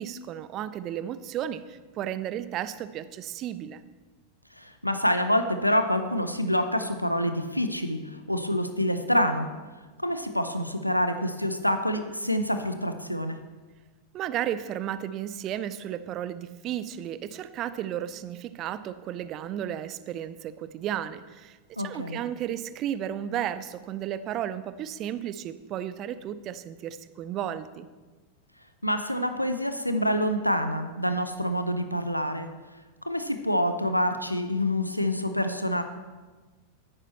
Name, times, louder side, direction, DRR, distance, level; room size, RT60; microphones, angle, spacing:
voice 1, 0.0-3.8 14.1-27.9, right 10 dB, 35° right, 14 dB, 0.5 m, -33 dB
voice 2, 4.6-9.5 10.0-13.4 21.8-22.2 28.8-32.5 33.1-35.8, equal, 90° left, 8 dB, 0.6 m, -27 dB
9.9 x 9.1 x 4.2 m, 1.3 s
figure-of-eight pair, 90°, 0 cm